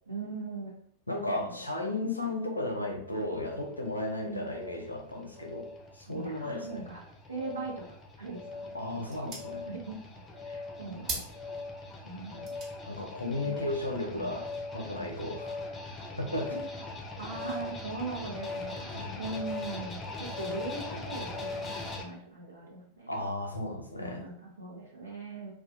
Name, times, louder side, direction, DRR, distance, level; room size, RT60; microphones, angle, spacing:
voice 1, 0.1-0.7 1.3-1.6 4.1-4.6 6.1-7.0 7.3-9.2 9.7-10.0 10.4-11.2 12.0-12.5 13.4-13.6 14.1-14.4 17.2-18.9 19.2-23.2 24.0-25.5, right 3 dB, 80° right, -3 dB, 0.8 m, -40 dB
voice 2, 1.1-6.8 8.7-9.7 12.9-14.5 14.7-15.6 16.2-16.8 18.9-19.2 23.1-24.2, left 1 dB, 85° left, 2 dB, 0.4 m, -34 dB
sound 1, 3.1-22.0, left 3 dB, 20° left, 0.4 m, -41 dB
sound 2, 8.1-14.9, right 3 dB, 40° right, 0.8 m, -46 dB
2.3 x 2.1 x 2.6 m, 0.63 s
figure-of-eight pair, 90°, 0 cm